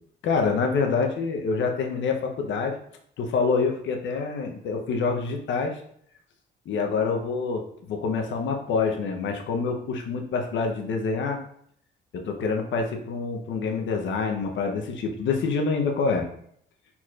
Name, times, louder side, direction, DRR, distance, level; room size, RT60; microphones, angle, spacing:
voice 1, 0.2-2.8 3.2-5.8 6.7-7.6 7.9-11.4 12.1-16.3, left 4 dB, 70° left, 3 dB, 0.8 m, -26 dB
4.6 x 4.2 x 2.4 m, 0.66 s
cardioid pair, 90°, 20 cm